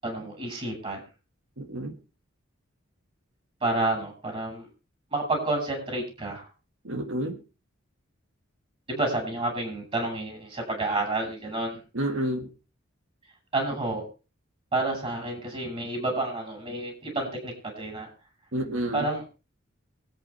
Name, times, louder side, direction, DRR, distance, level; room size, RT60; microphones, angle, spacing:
voice 1, 0.0-1.0 3.6-4.7 5.1-6.5 8.9-11.8 13.5-14.0 14.7-18.1 18.9-19.2, right 2 dB, 30° right, 1 dB, 6.0 m, -29 dB
voice 2, 1.6-1.9 6.8-7.4 11.9-12.5 18.5-19.1, right 1 dB, 75° right, 6 dB, 1.9 m, -29 dB
24.5 x 8.5 x 3.4 m, 0.32 s
head